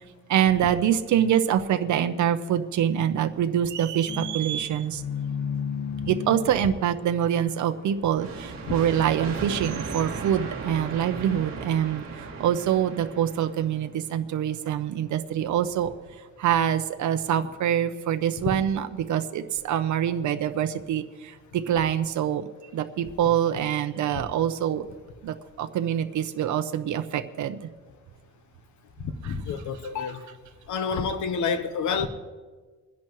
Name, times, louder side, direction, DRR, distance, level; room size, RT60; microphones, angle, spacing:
voice 1, 0.3-5.0 6.1-15.9 16.4-22.4 22.7-24.8 25.2-27.6 29.2-29.3, right 10 dB, 65° right, 0.8 m, -25 dB
sound 1, 4.1-9.0, left 7 dB, 30° left, 1.3 m, -35 dB
sound 2, 8.2-13.7, right 4 dB, 40° right, 2.4 m, -36 dB
voice 2, 29.0-30.3 30.7-32.1, left 5 dB, 65° left, 1.1 m, -29 dB
27.0 x 10.5 x 3.1 m
cardioid pair, 140°, 32 cm